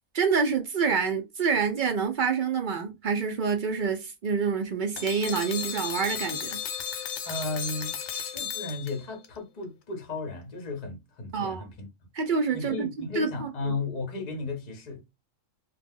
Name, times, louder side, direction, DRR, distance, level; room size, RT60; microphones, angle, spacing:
voice 1, 0.1-6.6 11.3-11.7 12.1-13.7, right 5 dB, 60° right, 0.5 m, -27 dB
sound 1, 5.0-9.3, left 7 dB, 85° left, 1.0 m, -34 dB
voice 2, 7.2-11.9 12.5-15.0, left 3 dB, 40° left, 0.8 m, -35 dB
2.3 x 2.2 x 3.4 m
omnidirectional pair, 1.4 m